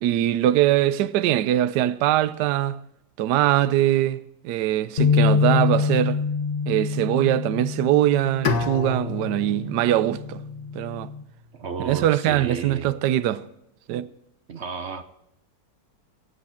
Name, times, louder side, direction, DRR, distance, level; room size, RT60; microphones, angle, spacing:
voice 1, 0.0-2.8 3.2-6.2 6.7-10.4 10.7-11.1 11.8-13.4 13.9-14.1, right 13 dB, 70° right, 1.2 m, -22 dB
sound 1, 5.0-11.2, left 5 dB, 35° left, 1.1 m, -26 dB
Bowed string instrument, 8.4-11.5, left 4 dB, 65° left, 1.9 m, -31 dB
voice 2, 11.5-12.9 14.5-15.0, right 5 dB, 50° right, 0.9 m, -33 dB
24.5 x 8.5 x 4.3 m
omnidirectional pair, 2.0 m